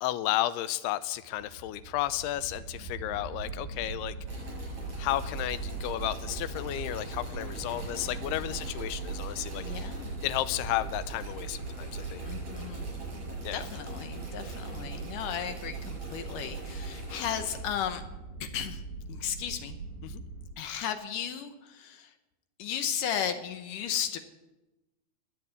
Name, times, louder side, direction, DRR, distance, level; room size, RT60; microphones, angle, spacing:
voice 1, 0.0-4.2 5.0-9.6 10.2-12.2 13.4-13.7 20.0-20.2, left 14 dB, 85° left, 14 dB, 2.7 m, -32 dB
sound 1, 1.1-20.5, right 3 dB, 60° right, 6.0 m, -39 dB
sound 2, 4.3-17.6, right 1 dB, 40° right, 8.6 m, -46 dB
voice 2, 9.6-10.2 12.3-13.1 13.5-18.0 18.4-18.8 19.1-19.8 20.6-22.1 22.6-24.2, left 9 dB, 70° left, 8 dB, 2.1 m, -35 dB
20.5 x 7.1 x 8.2 m, 1.0 s
omnidirectional pair, 4.6 m